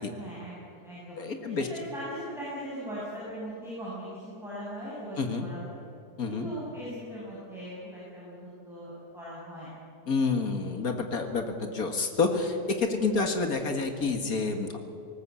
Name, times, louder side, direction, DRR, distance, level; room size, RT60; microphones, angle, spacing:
voice 1, 0.1-1.2 1.4-5.8 6.3-9.7 13.1-13.3, equal, ahead, -9 dB, 6.9 m, -40 dB
voice 2, 1.2-1.7 5.2-5.5 6.2-6.5 10.1-14.8, left 4 dB, 55° left, 5 dB, 2.1 m, -28 dB
20.0 x 18.5 x 8.4 m, 2.5 s
omnidirectional pair, 1.9 m